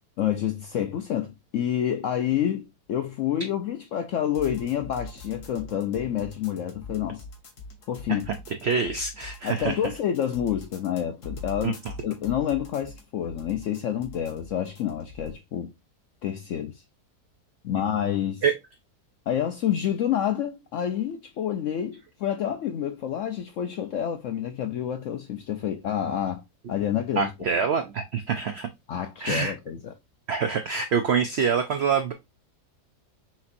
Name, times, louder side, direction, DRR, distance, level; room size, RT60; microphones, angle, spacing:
voice 1, 0.2-7.2 7.9-8.3 9.4-15.7 16.2-16.8 17.6-18.4 19.3-26.4 26.7-27.3 28.9-29.9, left 10 dB, 75° left, 0.7 m, -28 dB
sound 1, 4.3-15.3, left 2 dB, 55° left, 1.3 m, -42 dB
voice 2, 8.6-9.8 11.6-11.7 17.7-17.9 18.4-18.5 27.2-28.7 29.2-29.5 30.3-32.1, right 6 dB, 85° right, 0.5 m, -25 dB
5.9 x 2.8 x 2.5 m
omnidirectional pair, 1.8 m